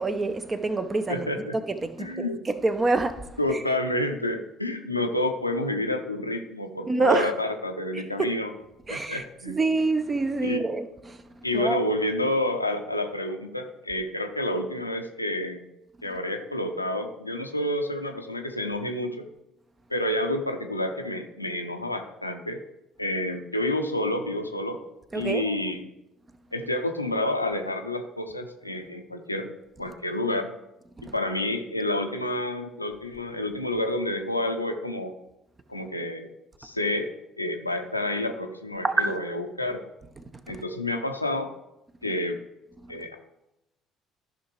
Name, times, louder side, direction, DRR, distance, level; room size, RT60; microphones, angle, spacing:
voice 1, 0.0-1.3 1.7-3.4 6.9-7.3 8.2-8.3 8.9-11.2 11.5-11.8 25.1-25.5 31.0-31.1 38.8-39.1, right 3 dB, 25° right, 0.8 m, -26 dB
voice 2, 1.1-1.6 2.0-2.4 3.4-8.5 8.9-9.7 10.4-10.6 11.4-15.7 16.0-19.3 19.9-22.6 23.0-24.8 25.1-25.9 26.5-29.5 29.8-30.5 31.1-35.1 35.7-36.3 36.6-37.1 37.4-39.8 40.5-41.5 42.0-42.4 42.9-43.2, left 1 dB, 90° left, 0.6 m, -29 dB
13.5 x 5.7 x 3.2 m
figure-of-eight pair, 55°, 0 cm